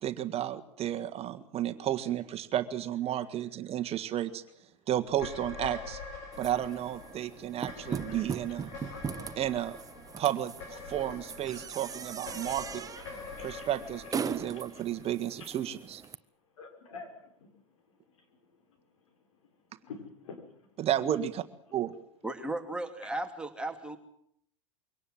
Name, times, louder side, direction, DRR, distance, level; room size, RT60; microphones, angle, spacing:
voice 1, 0.0-4.4 4.9-6.0 6.4-8.7 9.4-9.8 10.2-12.9 13.4-16.0 20.8-21.4 21.7-21.9, right 11 dB, 40° right, 10 dB, 1.6 m, -32 dB
sound 1, 5.1-15.6, left 4 dB, 60° left, 7.2 m, -45 dB
sound 2, 6.3-16.2, right 6 dB, 20° right, 0.9 m, -40 dB
voice 2, 13.4-13.7 14.2-14.8 15.4-15.5 16.6-19.4 19.7-20.8 21.7-21.8, left 4 dB, 80° left, 5 dB, 6.3 m, -50 dB
voice 3, 22.2-24.0, right 2 dB, 5° right, 5 dB, 2.7 m, -35 dB
23.5 x 18.0 x 7.7 m, 0.68 s
hypercardioid pair, 95°, 16 cm